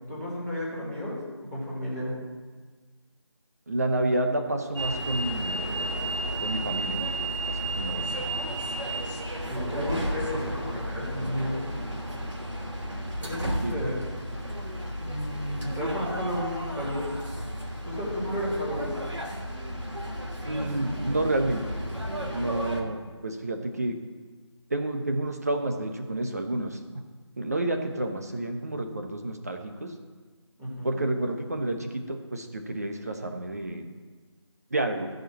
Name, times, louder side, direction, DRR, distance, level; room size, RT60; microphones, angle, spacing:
voice 1, 0.1-2.2 7.9-8.0 9.5-11.6 13.2-14.0 15.0-17.1 17.8-19.0 30.6-31.0, equal, 10° right, -9 dB, 2.5 m, -32 dB
voice 2, 3.7-5.7 6.4-7.1 7.4-8.2 13.6-13.8 20.5-21.8 22.3-24.0 24.7-26.8 27.4-29.9 30.8-33.8 34.7-35.1, right 1 dB, 35° right, 4 dB, 1.1 m, -30 dB
sound 1, 4.8-22.8, right 1 dB, 80° right, 3.0 m, -33 dB
14.0 x 5.3 x 7.3 m, 1.4 s
figure-of-eight pair, 170°, 15 cm